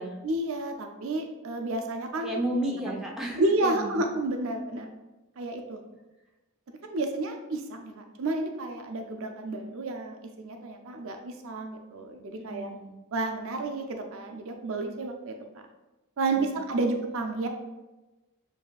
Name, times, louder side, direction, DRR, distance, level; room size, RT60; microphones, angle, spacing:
voice 1, 0.2-2.4 3.4-4.9 5.4-5.8 6.8-12.7 13.1-15.4 16.2-17.5, right 2 dB, 60° right, 4 dB, 0.4 m, -31 dB
voice 2, 2.2-4.0 12.3-13.0 16.3-16.6, right 1 dB, ahead, -3 dB, 0.6 m, -33 dB
7.2 x 2.7 x 2.3 m, 1.1 s
head